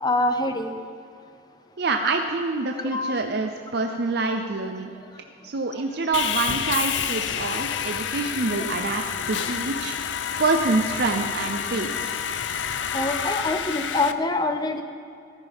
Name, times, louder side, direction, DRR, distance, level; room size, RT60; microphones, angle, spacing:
voice 1, 0.0-0.8 2.8-3.2 5.7-5.8 12.9-14.8, left 2 dB, 20° left, 7 dB, 0.8 m, -25 dB
voice 2, 1.8-4.9 5.4-9.0 9.3-10.0 10.4-12.1, right 3 dB, 60° right, 4 dB, 0.7 m, -26 dB
Sawing, 6.1-14.1, left 8 dB, 90° left, 0.5 m, -29 dB
14.0 x 13.5 x 3.6 m, 2.5 s
head